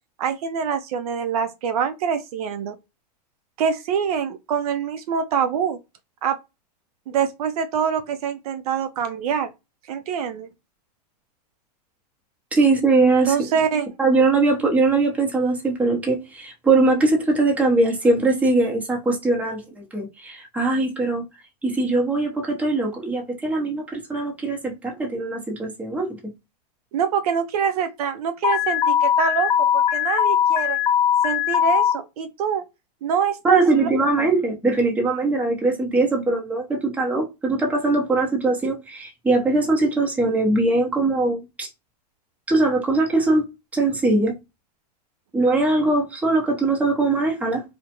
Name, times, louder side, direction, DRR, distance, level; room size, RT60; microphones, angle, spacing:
voice 1, 0.2-2.7 3.6-5.8 6.2-6.4 7.1-9.5 9.9-10.5 13.3-13.9 26.9-30.8 31.2-32.7 33.0-33.9 34.2-34.3, right 7 dB, 60° right, 0.4 m, -25 dB
voice 2, 12.5-13.3 14.0-21.2 21.6-26.2 33.4-41.7 42.5-43.4 43.7-44.4 45.3-47.6, right 3 dB, 5° right, 0.7 m, -21 dB
Alarm, 28.4-31.9, left 9 dB, 90° left, 0.7 m, -20 dB
2.3 x 2.1 x 2.8 m
hypercardioid pair, 130°, 21 cm